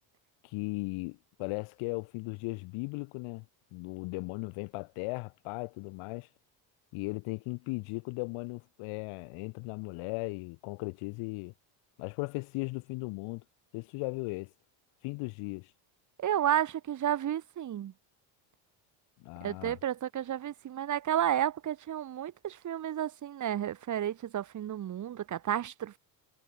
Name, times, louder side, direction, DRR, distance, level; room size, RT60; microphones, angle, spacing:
voice 1, 0.4-3.5 3.7-6.3 6.9-11.5 12.0-13.4 13.7-14.5 15.0-15.7 19.2-19.8, left 26 dB, 85° left, 5.5 m, -37 dB
voice 2, 16.2-17.9 19.4-26.0, right 10 dB, 35° right, 1.2 m, -32 dB
cardioid pair, 120°, 48 cm